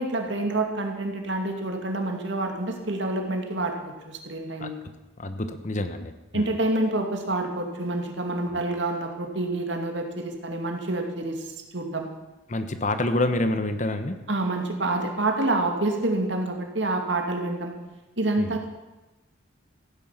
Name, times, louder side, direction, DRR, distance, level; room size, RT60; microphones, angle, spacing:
voice 1, 0.0-4.8 6.3-12.1 14.3-17.7 18.2-18.7, right 2 dB, 65° right, 3 dB, 2.4 m, -27 dB
voice 2, 5.2-6.6 12.5-14.3 18.4-18.6, left 2 dB, 40° left, 9 dB, 1.1 m, -28 dB
15.5 x 10.0 x 7.4 m, 1.1 s
head